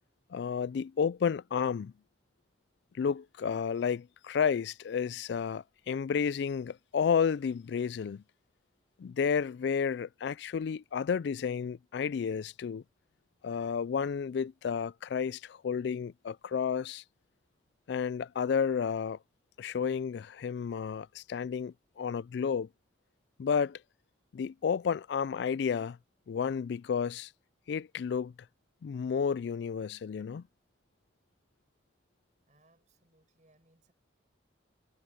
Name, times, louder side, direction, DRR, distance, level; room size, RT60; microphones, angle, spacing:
voice 1, 0.3-1.9 2.9-8.2 9.0-12.8 13.4-17.0 17.9-19.2 19.6-22.7 23.4-23.8 24.3-26.0 26.3-27.3 27.7-28.3 28.8-30.4, left 6 dB, 65° left, 0.3 m, -31 dB
voice 2, 32.5-33.9, right 2 dB, 40° right, 7.4 m, -67 dB
head